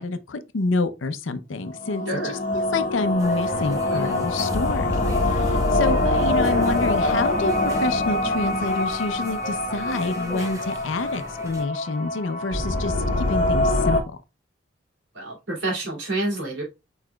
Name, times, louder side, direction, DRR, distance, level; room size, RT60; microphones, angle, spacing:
voice 1, 0.0-14.0, left 3 dB, 85° left, 0.6 m, -28 dB
sound 1, 1.8-14.0, left 2 dB, 45° left, 0.9 m, -24 dB
voice 2, 2.1-2.4 15.1-16.6, right 2 dB, 75° right, 2.5 m, -28 dB
sound 2, 3.2-11.6, right 1 dB, 15° right, 0.8 m, -39 dB
4.8 x 4.8 x 2.2 m
head